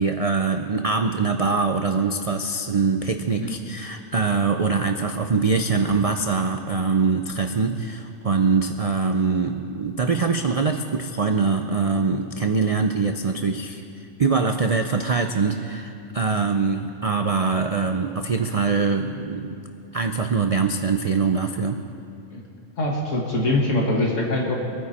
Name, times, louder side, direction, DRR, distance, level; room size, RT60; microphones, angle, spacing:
voice 1, 0.0-13.8 14.2-19.6 19.9-21.8, right 4 dB, 45° right, 6 dB, 0.4 m, -23 dB
voice 2, 22.8-24.6, left 1 dB, 70° left, -1 dB, 2.0 m, -23 dB
25.0 x 9.4 x 4.3 m, 2.6 s
omnidirectional pair, 1.3 m